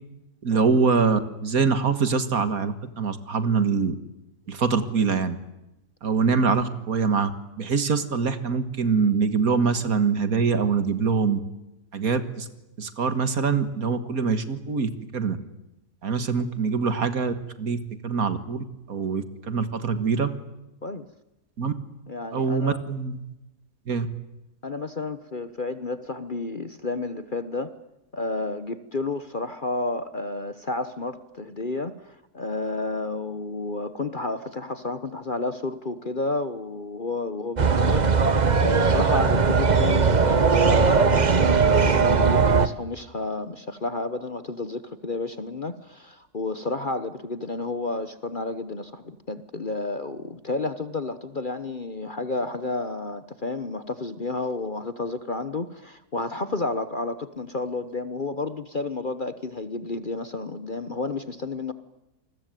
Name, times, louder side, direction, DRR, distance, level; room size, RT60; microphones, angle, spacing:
voice 1, 0.4-4.0 4.5-5.4 6.0-7.3 7.6-11.4 11.9-12.5 12.8-15.4 16.0-20.3 21.6-21.7 22.3-23.2 23.9-24.1, right 5 dB, 60° right, 12 dB, 2.1 m, -24 dB
voice 2, 22.1-22.8 24.6-27.7 28.1-38.3 38.6-61.7, left 2 dB, 35° left, 12 dB, 1.1 m, -31 dB
sound 1, 37.6-42.7, right 5 dB, 30° right, 1.0 m, -19 dB
28.0 x 21.0 x 9.2 m, 0.94 s
omnidirectional pair, 1.7 m